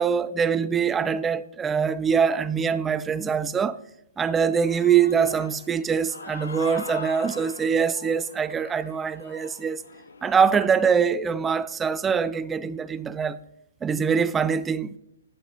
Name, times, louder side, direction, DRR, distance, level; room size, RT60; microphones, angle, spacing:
voice 1, 0.0-3.8 4.2-9.8 10.2-13.4 13.8-14.9, right 6 dB, 10° right, 0.4 m, -23 dB
Human voice / Cheering, 4.3-10.9, left 4 dB, 85° left, 0.9 m, -42 dB
9.5 x 7.9 x 4.3 m
hypercardioid pair, 140°, 0 cm